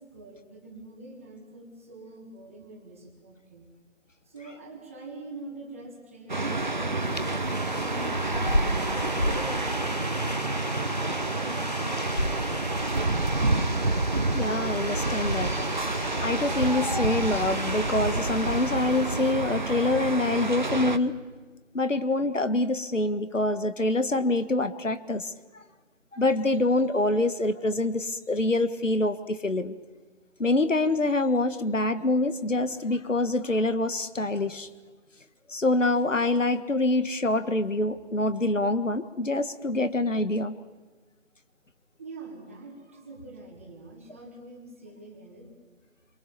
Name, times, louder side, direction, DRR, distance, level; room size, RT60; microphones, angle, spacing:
voice 1, 0.0-3.7 4.2-8.5 8.8-10.2 11.2-13.3 42.0-45.5, right 2 dB, 10° right, 0 dB, 1.7 m, -45 dB
sound 1, 6.3-21.0, right 2 dB, 40° right, 0.9 m, -28 dB
sound 2, 7.0-19.3, equal, 30° left, 0.7 m, -35 dB
voice 2, 14.3-15.5 16.2-21.2 21.7-25.3 26.1-29.7 30.4-34.7 35.5-40.6, left 2 dB, 75° left, 11 dB, 1.7 m, -25 dB
27.0 x 23.5 x 7.0 m, 1.4 s
figure-of-eight pair, 165°, 38 cm